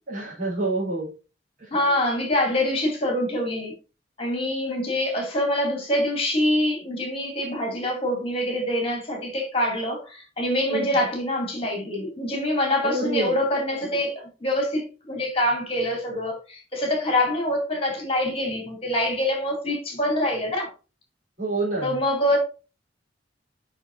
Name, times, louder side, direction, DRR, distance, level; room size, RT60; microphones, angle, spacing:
voice 1, 0.1-1.1 10.7-10.9 12.8-13.4 21.4-22.0, right 2 dB, 50° right, 3.7 m, -27 dB
voice 2, 1.7-3.7 4.2-20.7 21.8-22.4, left 1 dB, 30° left, 2.6 m, -25 dB
7.1 x 5.9 x 2.7 m
head